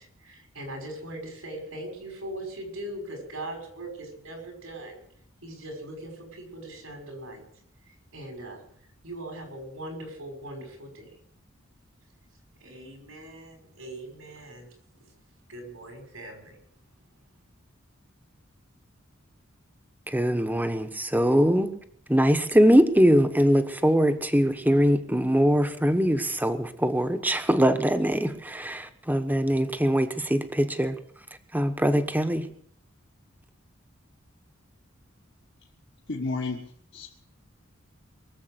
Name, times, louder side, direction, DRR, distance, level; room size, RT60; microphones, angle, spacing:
voice 1, 0.0-5.0 5.4-7.4 7.9-8.6 9.0-11.1 12.6-14.7 15.5-16.6, right 1 dB, 90° right, 5.9 m, -40 dB
voice 2, 20.1-21.7 22.1-31.0 31.5-32.5, equal, 10° right, 1.1 m, -22 dB
voice 3, 36.1-36.6 36.9-37.1, left 3 dB, 60° left, 1.7 m, -31 dB
22.5 x 7.6 x 7.8 m
head